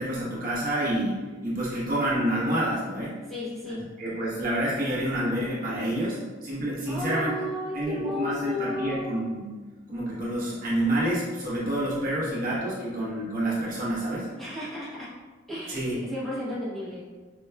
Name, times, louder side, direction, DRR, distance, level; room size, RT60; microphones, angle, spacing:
voice 1, 0.0-3.1 4.0-7.3 7.7-9.6 9.9-14.3 15.7-16.0, right 1 dB, 45° right, -7 dB, 0.9 m, -28 dB
voice 2, 3.3-3.8 6.9-9.2 14.4-15.1 15.5-17.0, left 1 dB, ahead, -10 dB, 0.7 m, -34 dB
4.6 x 2.2 x 2.2 m, 1.4 s
head